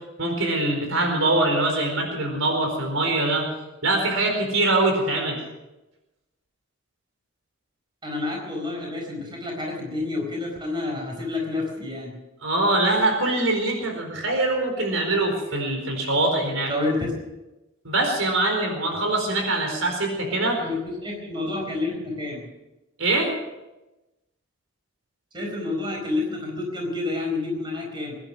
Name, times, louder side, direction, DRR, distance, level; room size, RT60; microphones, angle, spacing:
voice 1, 0.2-3.5 3.8-5.4 12.4-16.7 17.8-20.6 23.0-23.3, right 2 dB, 85° right, 3 dB, 4.4 m, -23 dB
voice 2, 8.0-12.1 16.7-17.1 20.6-22.4 25.3-28.2, left 2 dB, 25° right, 0 dB, 4.5 m, -29 dB
22.0 x 11.0 x 6.1 m, 1.0 s
head